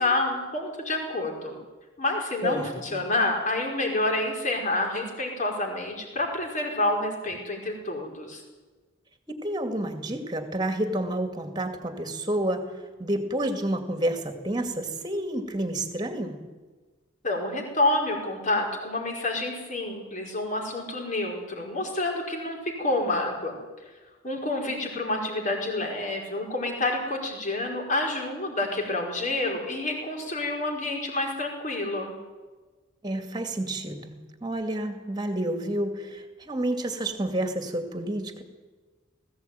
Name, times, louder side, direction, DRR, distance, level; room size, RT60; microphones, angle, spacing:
voice 1, 0.0-1.6 2.0-8.4 17.2-23.6 24.2-32.1, left 2 dB, 40° left, 1 dB, 5.0 m, -28 dB
voice 2, 2.4-3.0 9.4-12.6 13.0-16.4 33.0-38.4, right 1 dB, 20° right, 7 dB, 2.3 m, -29 dB
19.5 x 16.0 x 9.3 m, 1.3 s
head